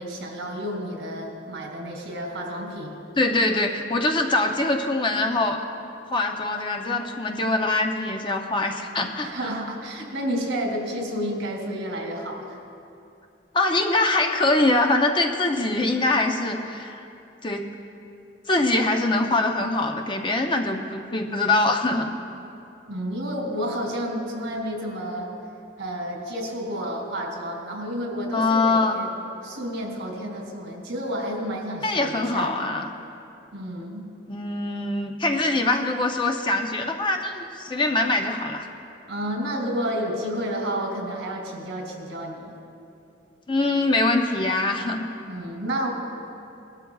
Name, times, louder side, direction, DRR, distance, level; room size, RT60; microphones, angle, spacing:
voice 1, 0.0-3.0 9.2-12.6 22.9-25.3 25.8-29.1 29.4-32.6 33.5-34.1 39.1-42.5 45.3-45.9, equal, 70° right, 1 dB, 2.4 m, -30 dB
voice 2, 3.2-5.6 6.1-9.3 13.5-17.0 17.4-17.6 18.5-22.1 28.3-29.0 31.8-32.9 34.3-38.7 43.5-45.1, left 2 dB, 25° left, 4 dB, 0.6 m, -23 dB
19.0 x 12.5 x 2.3 m, 2.6 s
head